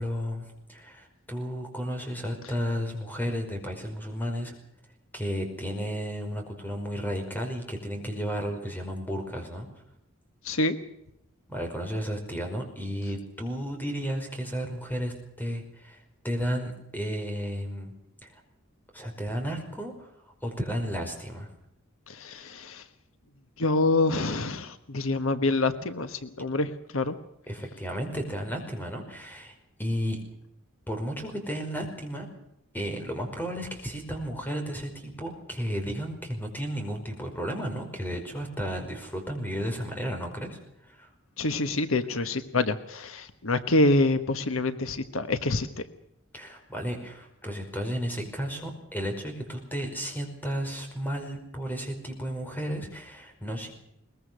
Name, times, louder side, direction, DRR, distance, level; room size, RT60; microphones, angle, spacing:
voice 1, 0.0-4.6 5.1-9.7 11.5-16.0 16.2-17.9 18.2-18.4 18.9-20.1 20.4-21.5 27.5-30.2 30.9-32.3 32.7-40.6 40.8-41.1 46.3-53.7, equal, 10° left, 4 dB, 5.2 m, -33 dB
voice 2, 10.4-10.8 22.1-22.8 23.6-27.1 41.4-45.7, left 2 dB, 80° left, 10 dB, 1.3 m, -26 dB
22.0 x 21.0 x 6.3 m, 0.80 s
head